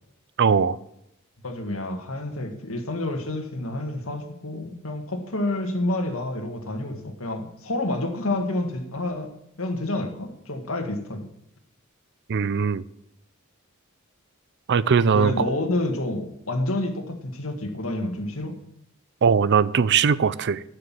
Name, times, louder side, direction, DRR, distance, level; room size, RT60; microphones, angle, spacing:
voice 1, 0.4-0.8 12.3-12.8 14.7-15.5 19.2-20.6, right 6 dB, 55° right, 18 dB, 0.5 m, -20 dB
voice 2, 1.4-9.3 9.6-11.3 15.1-18.5, left 1 dB, 70° left, 5 dB, 1.9 m, -29 dB
11.0 x 6.6 x 7.5 m, 0.79 s
head